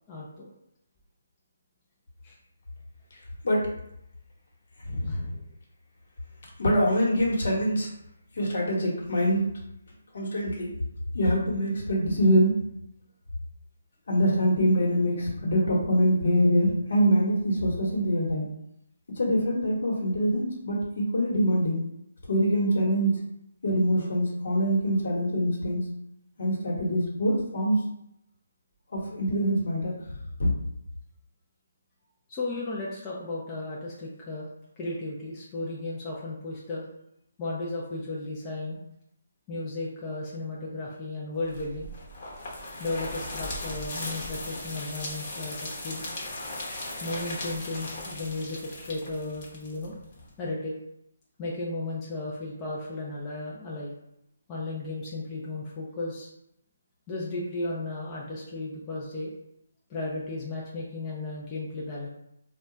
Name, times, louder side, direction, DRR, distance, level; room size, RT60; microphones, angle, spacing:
voice 1, 0.1-0.5 2.2-2.4 5.1-5.2 32.3-34.5 34.8-36.8 37.4-38.8 39.5-41.9 42.8-46.0 47.0-49.9 50.4-50.8 51.4-53.9 54.5-56.3 57.1-59.3 59.9-62.1, left 2 dB, 15° left, -5 dB, 0.4 m, -34 dB
voice 2, 4.8-5.3 6.6-7.9 8.3-9.4 10.1-10.7 11.1-12.5 14.1-18.5 19.2-21.8 22.3-23.1 23.6-25.8 26.4-27.8 28.9-29.9 30.4-30.5, equal, 60° left, -2 dB, 1.0 m, -24 dB
sound 1, 41.5-50.3, left 1 dB, 30° left, 0.8 m, -38 dB
2.2 x 2.2 x 3.8 m, 0.79 s
hypercardioid pair, 165°, 0 cm